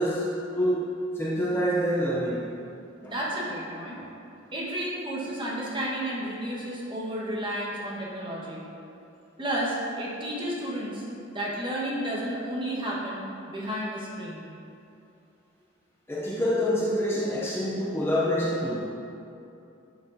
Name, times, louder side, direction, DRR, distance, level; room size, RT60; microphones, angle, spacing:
voice 1, 0.0-2.6 3.0-3.1 16.1-18.8, equal, 10° left, -5 dB, 0.5 m, -27 dB
voice 2, 3.0-4.0 4.5-8.6 9.4-11.0 11.3-14.4, right 1 dB, 25° right, -6 dB, 1.3 m, -32 dB
10.5 x 5.1 x 2.7 m, 2.7 s
head